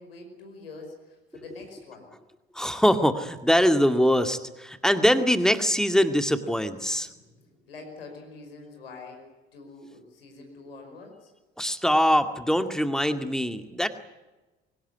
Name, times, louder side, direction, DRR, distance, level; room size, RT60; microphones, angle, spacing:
voice 1, 0.0-2.1 7.0-11.3, left 3 dB, 75° left, 3 dB, 5.5 m, -45 dB
voice 2, 2.5-7.1 11.6-13.9, equal, ahead, 8 dB, 2.2 m, -23 dB
24.0 x 17.5 x 9.6 m, 1.1 s
figure-of-eight pair, 55°, 30 cm